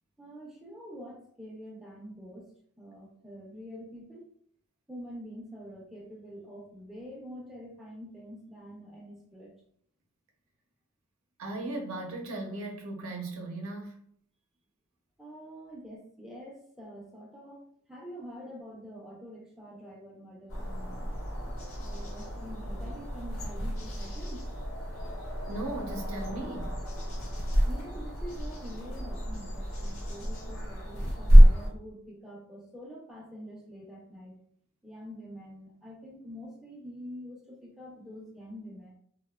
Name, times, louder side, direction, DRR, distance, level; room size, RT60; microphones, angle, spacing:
voice 1, 0.2-2.5 2.8-4.3 4.9-9.5 15.2-21.1 21.8-24.5 27.7-34.4 34.8-38.9, equal, ahead, -3 dB, 0.4 m, -46 dB
voice 2, 11.4-14.0 25.5-26.8, right 2 dB, 75° right, 1 dB, 0.5 m, -37 dB
sound 1, 20.5-31.7, equal, 65° left, 0.7 m, -26 dB
2.6 x 2.1 x 2.2 m, 0.64 s
head